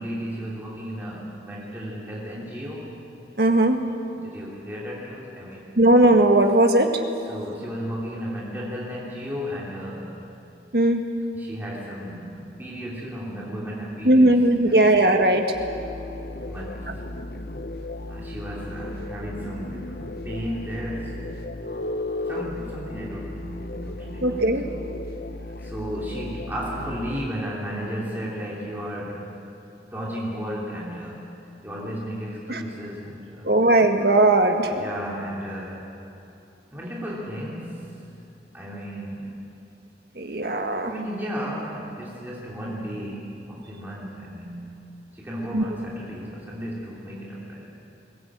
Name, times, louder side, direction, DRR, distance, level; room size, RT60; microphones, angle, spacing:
voice 1, 0.0-2.9 4.1-5.8 7.3-10.2 11.3-14.3 14.6-15.0 16.5-17.3 18.1-21.4 22.3-24.7 25.6-29.4 29.9-31.3 31.6-33.5 34.7-35.9 36.7-38.0 38.5-39.4 40.9-44.9 45.1-47.7, equal, 10° right, -6 dB, 2.9 m, -34 dB
voice 2, 3.4-3.8 5.8-6.9 10.7-11.0 14.1-15.5 24.2-24.6 32.5-32.6 33.4-34.7 40.2-40.9 45.5-45.6, right 1 dB, 65° right, 4 dB, 1.7 m, -18 dB
sound 1, 15.5-27.3, left 2 dB, 55° left, 0.8 m, -35 dB
21.5 x 17.5 x 8.8 m, 2.8 s
head